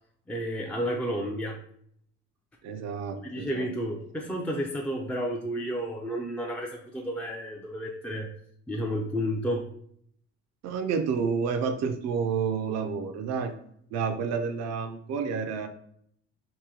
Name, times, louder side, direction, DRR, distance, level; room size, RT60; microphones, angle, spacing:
voice 1, 0.3-1.6 3.2-8.3 8.7-9.6, equal, 5° left, -1 dB, 0.4 m, -31 dB
voice 2, 2.6-3.7 10.6-13.5 13.9-15.7, right 6 dB, 60° right, 7 dB, 0.5 m, -29 dB
2.9 x 2.6 x 3.7 m, 0.66 s
cardioid pair, 95°, 30 cm